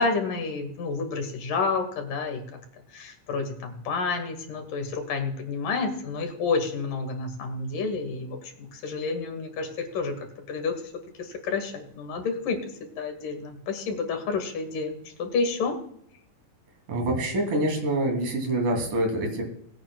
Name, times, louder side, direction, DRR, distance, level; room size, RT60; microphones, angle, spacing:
voice 1, 0.0-2.6 2.9-10.1 10.5-10.7 11.2-15.8, left 4 dB, 80° left, 5 dB, 3.5 m, -29 dB
voice 2, 16.9-19.4, right 1 dB, 70° right, 2 dB, 4.3 m, -26 dB
20.5 x 8.8 x 2.3 m, 0.69 s
omnidirectional pair, 3.8 m